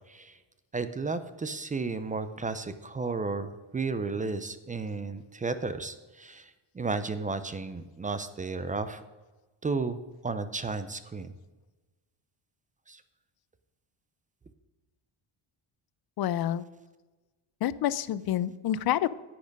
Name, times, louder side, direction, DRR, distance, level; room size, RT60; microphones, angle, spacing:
voice 1, 0.7-9.0 9.6-11.3 12.9-13.0, right 4 dB, 20° right, 12 dB, 0.3 m, -33 dB
voice 2, 16.2-16.6 17.6-19.1, left 11 dB, 50° left, 17 dB, 0.5 m, -28 dB
10.0 x 8.6 x 5.2 m, 1.2 s
cardioid pair, 155°, 49 cm